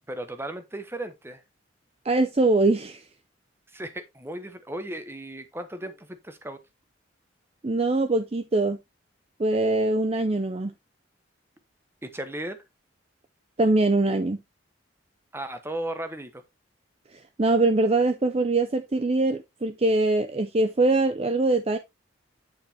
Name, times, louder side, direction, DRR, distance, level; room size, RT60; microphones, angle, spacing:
voice 1, 0.1-1.4 3.7-6.6 12.0-12.6 15.3-16.4, right 1 dB, 10° right, 1.0 m, -35 dB
voice 2, 2.0-3.1 7.6-8.8 9.4-10.7 13.6-14.4 17.1-21.8, right 2 dB, 30° right, 0.5 m, -23 dB
9.1 x 5.5 x 3.4 m
head